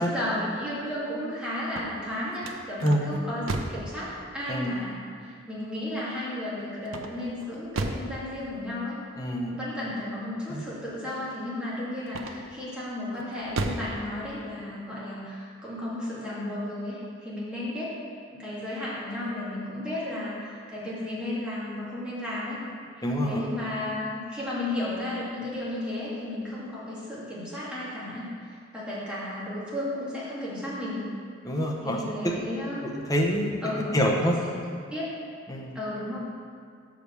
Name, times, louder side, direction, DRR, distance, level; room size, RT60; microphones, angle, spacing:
voice 1, 0.0-9.0 9.5-18.0 18.3-22.6 23.0-31.1 31.8-32.9 33.6-34.0 34.9-35.0 35.7-36.2, left 1 dB, 5° right, -9 dB, 2.1 m, -34 dB
sound 1, 1.6-3.9 6.9-8.2 12.1-12.6 13.1-13.9, right 2 dB, 90° right, 0.6 m, -33 dB
voice 2, 9.2-9.6 10.5-10.6 23.0-23.5 31.4-32.0 32.2-32.3 32.8-33.5 33.9-34.3 35.5-35.8, equal, 20° left, -1 dB, 0.8 m, -26 dB
6.1 x 5.1 x 6.8 m, 2.2 s
head